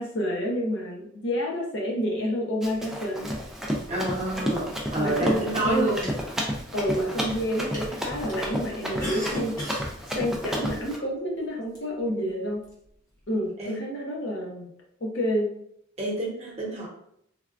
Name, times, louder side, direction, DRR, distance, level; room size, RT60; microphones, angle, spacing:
voice 1, 0.0-3.3 5.0-5.9 6.7-9.6 10.1-12.7 13.3-14.7 15.0-15.6, equal, 55° left, -1 dB, 0.7 m, -29 dB
Run, 2.6-11.0, equal, ahead, 0.3 m, -31 dB
voice 2, 3.9-4.7 4.9-6.1 13.6-13.8 16.0-16.9, right 2 dB, 30° right, -5 dB, 0.8 m, -28 dB
sound 1, 5.9-6.6 7.1-7.4 7.7-7.8 8.3-8.4 8.9-9.9 10.4-10.5 11.8-11.9 12.5-12.7, equal, 20° left, 0.8 m, -35 dB
3.4 x 2.2 x 2.4 m, 0.72 s
head